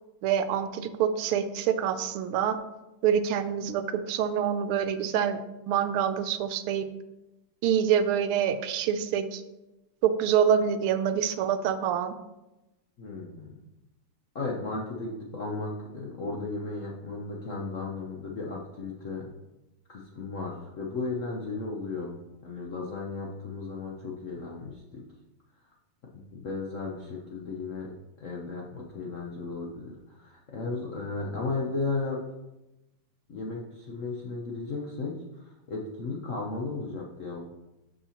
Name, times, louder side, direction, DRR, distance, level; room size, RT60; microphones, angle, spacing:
voice 1, 0.2-2.6 3.0-5.4 5.7-6.9 7.6-9.4 10.0-12.1, right 8 dB, 90° right, 10 dB, 1.5 m, -26 dB
voice 2, 13.0-13.6 14.3-19.3 19.9-22.2 22.4-25.0 26.1-27.9 28.2-32.2 33.3-37.4, left 3 dB, 60° left, -2 dB, 0.8 m, -35 dB
11.5 x 5.4 x 2.9 m, 0.99 s
omnidirectional pair, 2.3 m